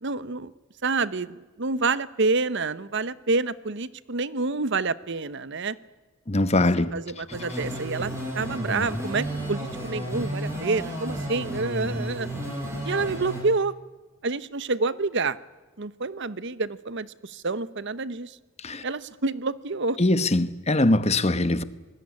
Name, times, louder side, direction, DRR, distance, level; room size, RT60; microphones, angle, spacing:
voice 1, 0.0-0.5 0.8-5.8 6.9-12.3 12.8-13.7 14.2-15.4 15.8-18.4 18.8-20.0, right 3 dB, 60° right, 1.0 m, -28 dB
voice 2, 6.3-6.9 18.6-18.8 20.0-21.6, left 2 dB, 30° left, 1.1 m, -22 dB
sound 1, 7.3-13.4, equal, 15° right, 7.9 m, -32 dB
26.0 x 20.5 x 9.8 m
head